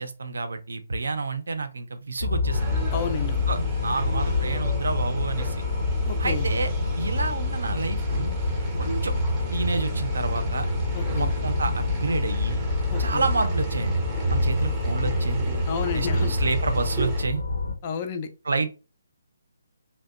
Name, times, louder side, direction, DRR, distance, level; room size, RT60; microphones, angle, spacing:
voice 1, 0.0-2.8 3.5-5.6 6.2-6.7 7.0-8.3 8.8-9.1 9.5-10.7 11.1-12.6 13.0-14.0 14.3-15.4 15.9-17.4 18.4-18.7, right 4 dB, 65° right, 0.4 m, -29 dB
sound 1, 2.2-17.7, left 2 dB, 75° left, 0.7 m, -26 dB
sound 2, 2.5-17.2, right 2 dB, 15° right, 0.6 m, -37 dB
voice 2, 2.9-3.5 6.1-6.5 10.9-11.3 12.9-13.2 15.7-16.3 17.8-18.3, left 7 dB, 30° left, 0.3 m, -31 dB
2.7 x 2.1 x 2.3 m
figure-of-eight pair, 140°, 0 cm